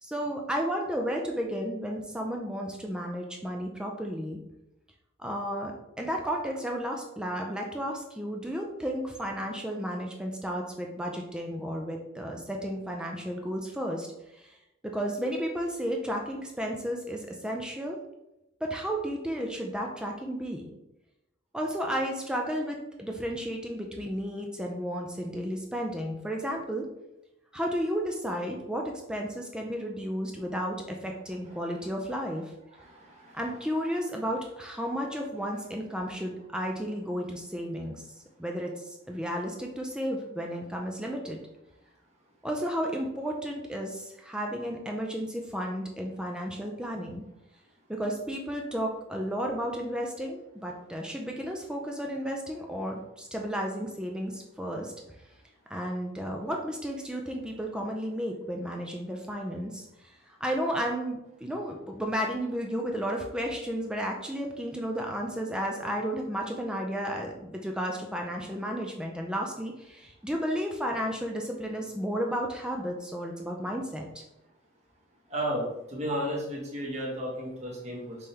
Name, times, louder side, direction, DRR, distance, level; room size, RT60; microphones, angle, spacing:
voice 1, 0.0-4.4 5.2-14.1 14.3-14.6 14.8-18.0 18.6-20.7 21.5-26.9 27.5-32.5 33.3-38.0 38.4-41.4 42.4-47.2 47.9-54.9 55.7-74.2, equal, 5° right, 0 dB, 0.5 m, -33 dB
voice 2, 32.8-33.4 75.3-78.2, equal, 35° right, -3 dB, 1.3 m, -33 dB
5.4 x 3.3 x 2.8 m, 0.88 s
head